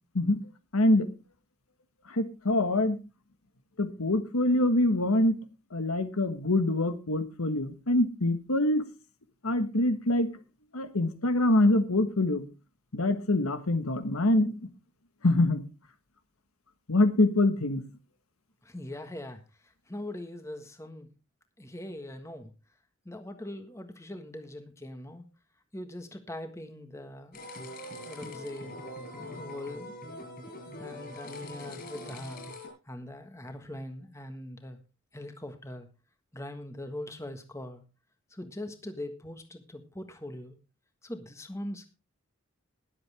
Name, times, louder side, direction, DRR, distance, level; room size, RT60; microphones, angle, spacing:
voice 1, 0.7-1.1 2.1-3.0 3.8-5.4 5.7-8.8 9.4-10.3 10.7-12.4 12.9-14.5 15.2-15.6 16.9-17.8, left 1 dB, 85° left, 10 dB, 1.5 m, -25 dB
voice 2, 18.6-21.1 21.6-22.5 23.0-25.3 25.7-27.4 28.0-28.7 29.2-29.9 30.4-32.4 32.8-34.8 35.1-35.9 36.3-37.8 38.3-40.6 41.0-41.9, left 1 dB, 15° left, 7 dB, 1.5 m, -41 dB
sound 1, 27.3-32.7, left 1 dB, 45° left, 6.4 m, -43 dB
21.0 x 7.8 x 3.5 m, 0.29 s
head